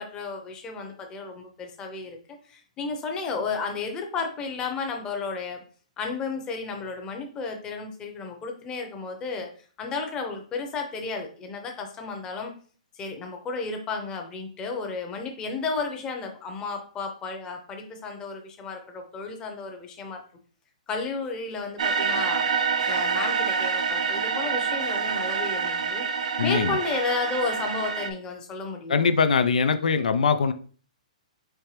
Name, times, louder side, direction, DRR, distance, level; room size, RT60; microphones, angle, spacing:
voice 1, 0.0-5.6 6.0-9.5 9.8-12.5 12.9-20.2 20.9-29.1, left 4 dB, 20° left, 3 dB, 0.8 m, -33 dB
sound 1, 21.8-28.1, right 5 dB, 70° right, 0.6 m, -27 dB
voice 2, 26.4-26.7 28.9-30.5, left 5 dB, 80° left, 10 dB, 0.4 m, -22 dB
4.4 x 3.2 x 3.3 m, 0.43 s
hypercardioid pair, 150°, 4 cm